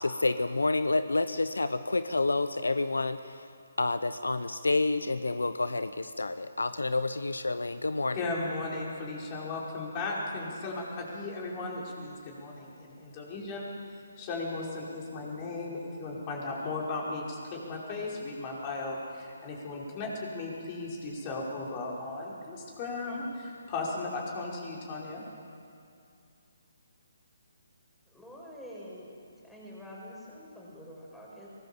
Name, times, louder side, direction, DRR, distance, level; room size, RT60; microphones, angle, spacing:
voice 1, 0.0-3.4 3.8-8.3, left 2 dB, 80° left, 12 dB, 0.9 m, -29 dB
voice 2, 8.1-13.7 14.2-25.2, left 3 dB, 30° left, -3 dB, 5.2 m, -36 dB
voice 3, 28.1-29.2 29.4-31.5, equal, ahead, -5 dB, 5.9 m, -46 dB
23.0 x 19.5 x 7.3 m, 2.5 s
figure-of-eight pair, 145°, 0 cm